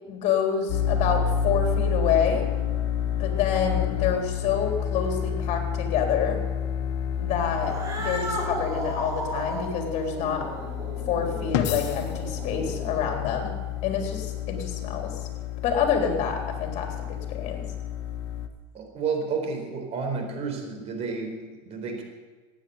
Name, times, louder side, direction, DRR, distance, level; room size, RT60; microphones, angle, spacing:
voice 1, 0.0-2.5 3.1-6.5 7.2-10.5 11.1-13.6 13.8-15.3 15.6-17.6, left 7 dB, 55° left, 3 dB, 3.7 m, -27 dB
sound 1, 0.7-18.5, left 8 dB, 70° left, 1.5 m, -30 dB
Cat, 7.5-13.2, right 1 dB, 25° right, 5.6 m, -35 dB
voice 2, 18.7-22.0, right 5 dB, 45° right, 4 dB, 4.2 m, -31 dB
15.5 x 9.9 x 8.0 m, 1.3 s
supercardioid pair, 105°, 15 cm